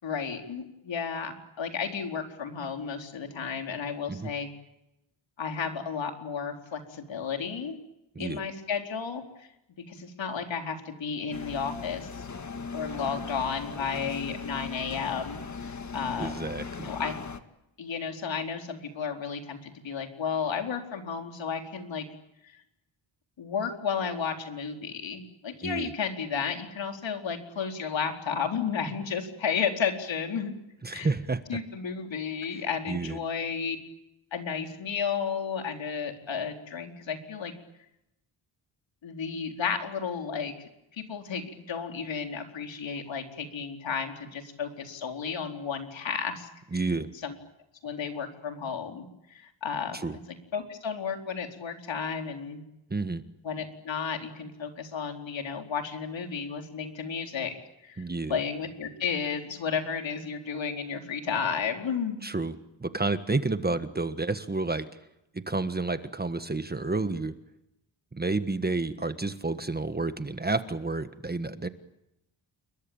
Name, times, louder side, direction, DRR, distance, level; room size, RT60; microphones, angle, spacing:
voice 1, 0.0-4.5 5.4-7.8 8.2-9.5 9.9-12.3 12.7-16.3 16.8-17.2 17.8-22.0 22.4-22.6 23.4-30.5 30.9-31.1 31.5-33.8 34.3-37.5 39.0-40.5 40.9-46.9 47.2-47.3 47.8-50.0 50.5-52.6 53.4-58.0 58.3-62.2, left 6 dB, 70° left, 4 dB, 4.3 m, -33 dB
sound 1, 11.3-17.4, left 5 dB, 35° left, 1.9 m, -38 dB
voice 2, 16.2-16.9 25.6-25.9 30.8-31.4 32.9-33.2 46.7-47.1 49.9-50.2 52.9-53.2 58.0-58.4 62.2-64.9 65.3-67.3 68.1-71.7, right 3 dB, 20° right, 11 dB, 1.5 m, -30 dB
29.5 x 22.0 x 8.8 m, 0.86 s
cardioid pair, 100°, 47 cm